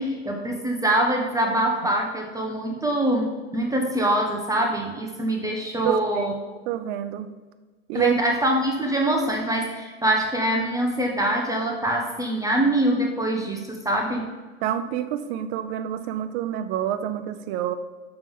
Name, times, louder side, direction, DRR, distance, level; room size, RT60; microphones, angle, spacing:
voice 1, 0.0-6.3 7.9-14.3, right 1 dB, 10° right, 0 dB, 0.8 m, -24 dB
voice 2, 5.8-6.3 6.7-7.3 7.9-8.1 14.6-17.7, right 11 dB, 65° right, 10 dB, 0.7 m, -27 dB
6.7 x 3.5 x 5.4 m, 1.3 s
supercardioid pair, 110°, 35 cm